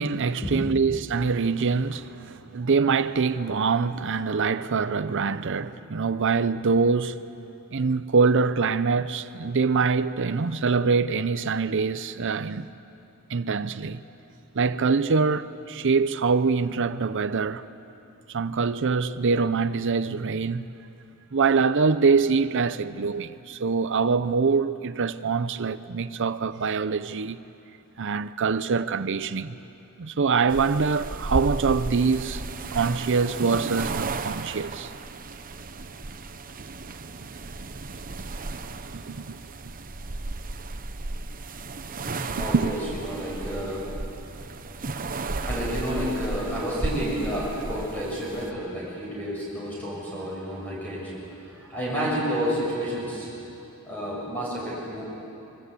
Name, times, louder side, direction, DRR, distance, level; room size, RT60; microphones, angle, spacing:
voice 1, 0.0-7.2 7.7-12.7 13.3-14.0 14.5-17.6 18.3-20.7 21.3-27.4 28.0-29.6 30.0-32.4 32.7-34.9 38.8-39.4 42.3-42.7, right 5 dB, 60° right, 0.6 m, -24 dB
sound 1, 30.5-48.5, right 3 dB, 40° right, 0.9 m, -34 dB
voice 2, 42.0-42.8 43.0-43.8 45.4-53.3 53.8-55.0, equal, 10° left, 6.8 m, -30 dB
26.0 x 23.0 x 8.4 m
head